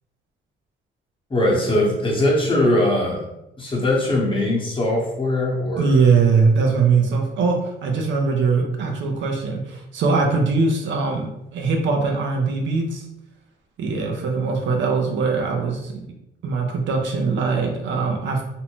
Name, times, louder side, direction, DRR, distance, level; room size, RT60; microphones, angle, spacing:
voice 1, 1.3-3.2 3.6-6.0, left 1 dB, 25° left, -4 dB, 1.0 m, -21 dB
voice 2, 5.8-13.0 13.8-16.1 16.4-18.4, right 4 dB, 70° right, 1 dB, 0.6 m, -21 dB
2.6 x 2.1 x 2.9 m, 0.86 s
cardioid pair, 90°, 20 cm